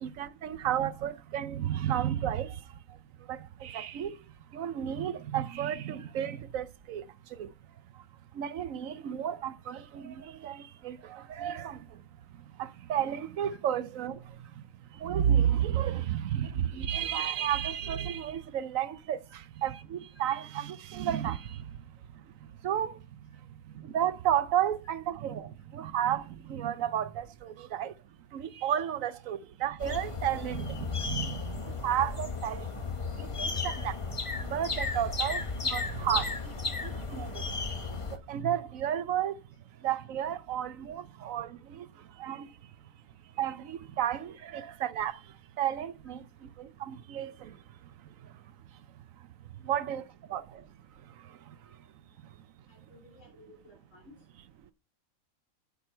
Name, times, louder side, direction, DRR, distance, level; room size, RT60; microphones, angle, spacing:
voice 1, 0.0-2.5 3.3-4.1 4.5-7.0 7.4-7.5 8.4-11.8 12.6-14.2 15.0-19.2 19.6-21.4 22.6-22.9 23.9-26.2 26.5-27.9 28.3-32.6 33.4-33.9 34.5-35.4 35.7-36.3 37.1-37.3 38.3-39.3 39.8-41.5 41.8-41.9 42.2-42.5 43.4-45.1 45.6-46.2 46.6-47.3 49.7-50.0 50.3-50.4, right 10 dB, 75° right, 1.1 m, -32 dB
sound 1, 29.8-38.2, left 4 dB, 25° left, 0.9 m, -34 dB
voice 2, 52.7-54.1, left 2 dB, 60° left, 3.7 m, -56 dB
10.5 x 7.1 x 4.4 m
omnidirectional pair, 1.4 m